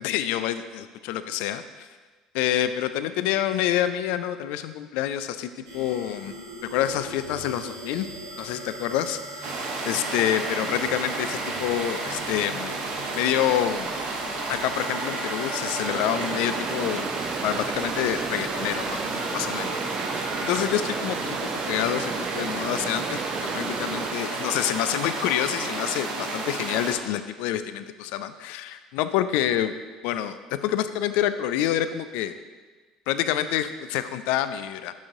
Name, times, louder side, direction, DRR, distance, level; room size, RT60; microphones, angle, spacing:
voice 1, 0.0-1.9 2.3-6.3 6.6-8.1 8.4-12.7 13.1-13.9 14.5-17.1 17.4-21.4 21.7-29.8 30.0-32.3 33.1-34.9, left 11 dB, 60° left, 12 dB, 0.3 m, -27 dB
sound 1, 5.7-20.6, equal, 70° right, 1.9 m, -39 dB
sound 2, 9.4-26.9, right 3 dB, 50° right, 1.0 m, -32 dB
sound 3, 15.8-24.2, right 5 dB, 30° right, 0.4 m, -34 dB
6.1 x 6.1 x 3.7 m, 1.3 s
figure-of-eight pair, 60°, 3 cm